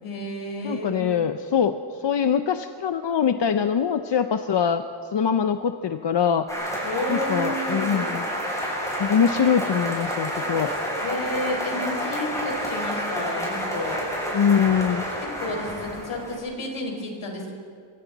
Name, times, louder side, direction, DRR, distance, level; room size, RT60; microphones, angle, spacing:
voice 1, 0.0-1.2 6.8-8.3 11.0-14.0 15.2-17.5, left 1 dB, 75° left, 1 dB, 4.9 m, -31 dB
voice 2, 0.6-1.8 2.0-4.9 5.1-6.5 7.1-8.2 9.0-10.7 14.3-15.0, left 7 dB, 60° left, 8 dB, 0.8 m, -23 dB
sound 1, 6.5-16.4, equal, 5° left, 7.2 m, -29 dB
26.5 x 25.5 x 4.1 m, 2.4 s
wide cardioid pair, 175°, 49 cm